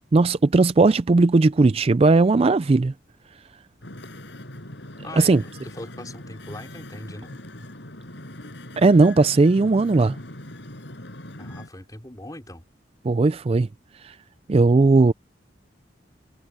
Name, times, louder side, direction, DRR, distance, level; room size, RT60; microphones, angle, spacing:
voice 1, 0.1-2.9 5.2-5.4 8.8-10.2 13.0-13.7 14.0-14.1 14.5-15.1, right 3 dB, 30° right, 0.4 m, -17 dB
Wind / Ocean, 3.8-11.7, left 1 dB, 70° left, 5.5 m, -40 dB
voice 2, 5.0-7.3 11.4-12.6, left 1 dB, 20° left, 4.4 m, -40 dB
head